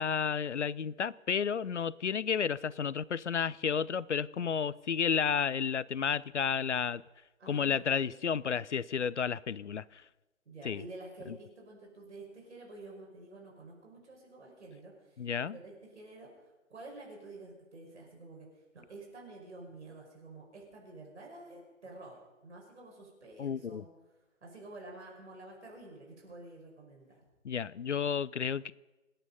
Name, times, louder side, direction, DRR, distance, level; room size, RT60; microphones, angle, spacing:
voice 1, 0.0-7.0 7.5-10.0 10.6-10.8 11.3-11.4 15.2-15.6 23.4-23.9 27.4-28.7, left 7 dB, 60° left, 20 dB, 0.6 m, -32 dB
voice 2, 7.4-8.2 10.5-16.3 16.7-18.6 18.9-23.9 24.4-27.2, right 2 dB, 55° right, -1 dB, 5.5 m, -50 dB
26.5 x 9.0 x 5.5 m, 1.1 s
figure-of-eight pair, 140°, 40 cm